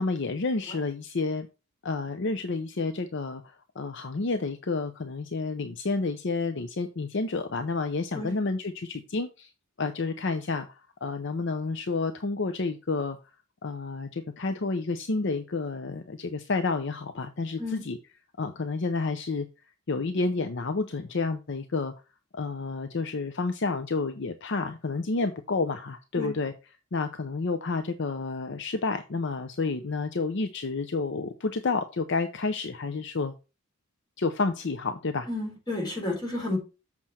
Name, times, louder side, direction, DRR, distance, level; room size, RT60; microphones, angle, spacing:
voice 1, 0.0-1.5 1.8-3.4 3.8-9.5 9.8-13.2 13.6-18.0 18.4-19.5 19.9-21.9 22.3-26.5 26.9-33.3 34.2-35.3, left 3 dB, 60° left, 8 dB, 0.7 m, -30 dB
voice 2, 35.3-36.6, left 2 dB, 20° left, 0 dB, 4.3 m, -31 dB
7.6 x 6.1 x 4.2 m, 0.30 s
head